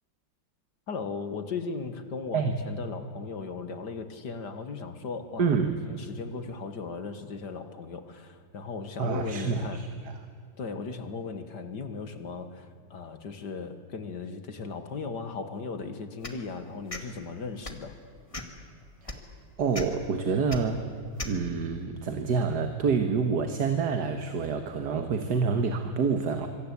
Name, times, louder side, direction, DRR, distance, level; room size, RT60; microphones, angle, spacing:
voice 1, 0.9-5.5 5.9-9.9 10.6-18.0, left 4 dB, 60° left, 9 dB, 2.4 m, -37 dB
voice 2, 5.4-5.8 9.0-9.9 19.0-19.1 19.6-20.9 21.2-26.5, right 5 dB, 60° right, 7 dB, 2.0 m, -27 dB
sound 1, 16.2-16.4 16.9-17.0 17.6-17.8 18.3-18.6 19.1-19.2 19.7-19.9 20.5-20.6 21.2-21.3, left 2 dB, 15° left, 2.1 m, -36 dB
26.0 x 23.5 x 8.5 m, 2.2 s
omnidirectional pair, 2.0 m